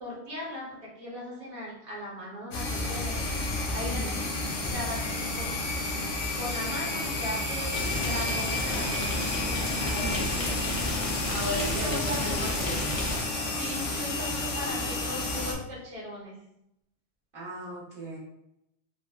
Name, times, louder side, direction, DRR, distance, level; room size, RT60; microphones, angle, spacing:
voice 1, 0.0-3.4 3.7-4.2 4.7-5.6 6.4-7.7 8.0-10.6 11.1-12.4 13.4-14.8 15.0-16.4, left 1 dB, 35° right, -5 dB, 0.8 m, -38 dB
sound 1, 2.5-15.5, left 2 dB, 80° left, 0.9 m, -31 dB
voice 2, 3.8-4.2 9.8-10.4 11.3-12.8 17.3-18.2, equal, 55° right, -7 dB, 1.0 m, -37 dB
sound 2, 7.7-13.2, left 1 dB, 40° left, 0.5 m, -32 dB
3.4 x 2.0 x 2.2 m, 0.83 s
omnidirectional pair, 1.1 m